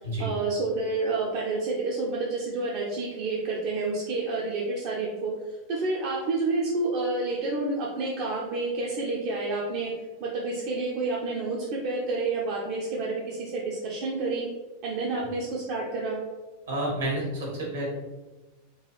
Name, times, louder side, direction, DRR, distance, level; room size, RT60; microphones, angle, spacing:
voice 1, 0.2-5.3 5.7-9.9 10.2-14.5 14.8-16.2, right 3 dB, 50° right, -3 dB, 0.6 m, -29 dB
voice 2, 16.7-17.9, right 1 dB, 75° right, -4 dB, 1.5 m, -29 dB
3.8 x 2.4 x 3.0 m, 1.2 s
figure-of-eight pair, 90°, 0 cm